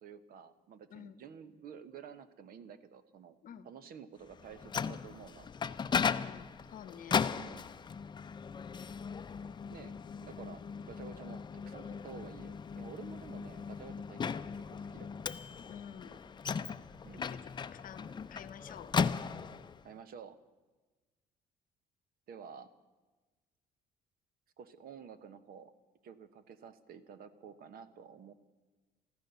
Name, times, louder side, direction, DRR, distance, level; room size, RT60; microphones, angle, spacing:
voice 1, 0.0-3.3 3.6-5.5 7.3-7.7 9.7-9.9 10.2-15.1 17.0-17.4 19.8-20.4 22.3-22.7 24.6-25.7 26.0-28.3, right 7 dB, 60° right, 13 dB, 1.1 m, -51 dB
voice 2, 0.9-1.2 3.4-3.7 6.0-7.2 13.5-13.6 15.7-16.1 17.2-18.9, left 9 dB, 55° left, 15 dB, 0.9 m, -49 dB
Microwave oven, 4.3-19.8, left 6 dB, 25° left, 0.6 m, -37 dB
14.5 x 14.5 x 6.9 m, 1.2 s
cardioid pair, 110°, 17 cm